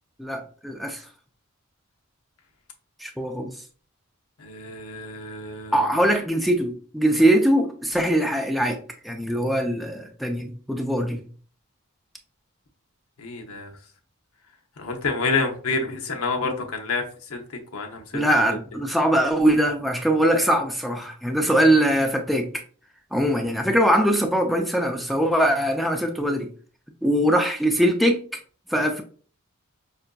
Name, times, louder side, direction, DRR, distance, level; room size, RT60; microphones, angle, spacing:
voice 1, 0.2-1.0 3.0-3.5 5.7-8.8 9.0-11.2 18.1-22.6 23.1-26.5 27.0-28.2 28.7-29.0, right 1 dB, ahead, 0.4 m, -22 dB
voice 2, 4.4-5.9 13.2-13.7 14.8-18.2, left 3 dB, 90° left, 0.8 m, -28 dB
5.5 x 2.5 x 2.2 m
head